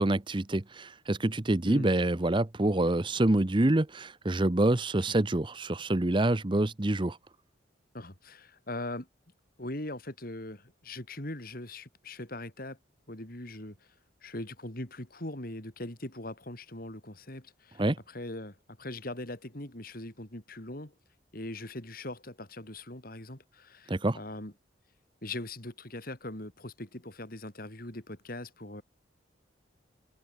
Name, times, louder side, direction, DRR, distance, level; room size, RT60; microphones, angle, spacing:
voice 1, 0.0-7.2 17.8-18.0 23.9-24.2, right 1 dB, 25° right, 0.8 m, -26 dB
voice 2, 7.9-9.1 9.6-12.8 13.1-13.8 14.2-20.9 21.3-24.5 25.2-28.8, left 1 dB, 50° left, 3.2 m, -41 dB
head